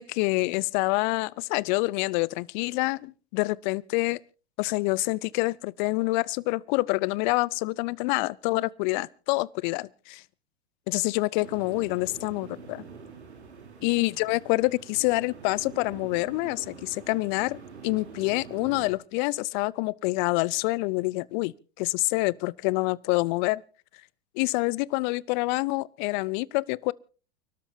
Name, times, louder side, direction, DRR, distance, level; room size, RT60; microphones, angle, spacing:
voice 1, 0.0-4.2 4.6-10.2 10.9-12.8 13.8-23.6 24.4-26.9, left 23 dB, 45° left, 0.6 m, -27 dB
sound 1, 11.4-18.9, right 5 dB, 85° right, 3.6 m, -45 dB
30.0 x 12.5 x 2.7 m
hypercardioid pair, 95°, 33 cm